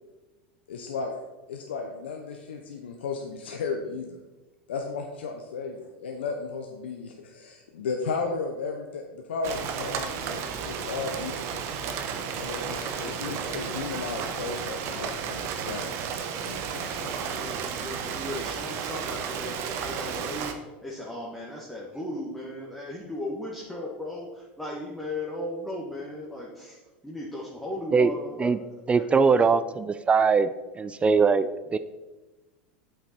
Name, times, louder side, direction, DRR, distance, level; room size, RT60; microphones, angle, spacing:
voice 1, 0.7-1.1 1.5-4.2 4.7-11.6 12.4-15.9 16.3-17.1, left 4 dB, 80° left, 3 dB, 0.7 m, -34 dB
Rain, 9.4-20.5, right 6 dB, 50° right, 0.9 m, -33 dB
voice 2, 12.8-13.4 17.0-20.5 20.8-28.5 28.9-29.1 29.4-29.6, left 1 dB, 5° left, -5 dB, 1.6 m, -37 dB
voice 3, 28.9-30.5 30.8-31.8, right 5 dB, 20° right, 13 dB, 0.3 m, -21 dB
8.2 x 5.8 x 4.3 m, 1.2 s
hypercardioid pair, 95°, 6 cm